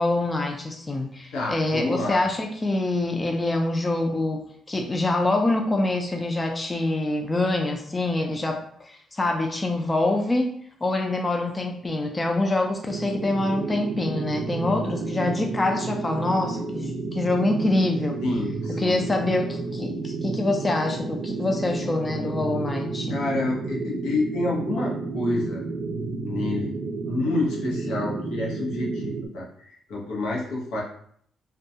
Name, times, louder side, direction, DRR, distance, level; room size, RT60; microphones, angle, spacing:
voice 1, 0.0-10.5 10.8-18.2 18.7-23.2, left 2 dB, 20° left, 3 dB, 0.3 m, -25 dB
voice 2, 1.3-2.2 18.2-19.0 23.1-25.6 26.2-26.7 27.0-30.8, left 2 dB, 85° left, -3 dB, 0.8 m, -28 dB
sound 1, 12.9-29.3, right 3 dB, 65° right, 0.5 m, -31 dB
2.2 x 2.1 x 2.7 m, 0.63 s
cardioid pair, 90°, 0 cm